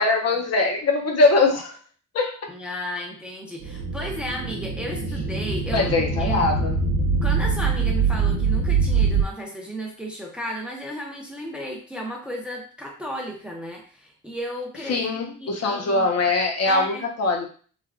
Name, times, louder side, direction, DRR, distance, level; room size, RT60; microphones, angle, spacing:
voice 1, 0.0-1.8 2.1-2.4 5.7-6.8 14.9-17.5, left 3 dB, 50° left, 1 dB, 0.6 m, -22 dB
voice 2, 2.5-5.9 6.2-6.7 7.2-16.1 16.7-17.0, equal, 5° right, -1 dB, 0.5 m, -34 dB
sound 1, 3.6-9.2, right 4 dB, 55° right, 0.6 m, -23 dB
3.2 x 2.1 x 2.4 m, 0.41 s
cardioid pair, 115°, 32 cm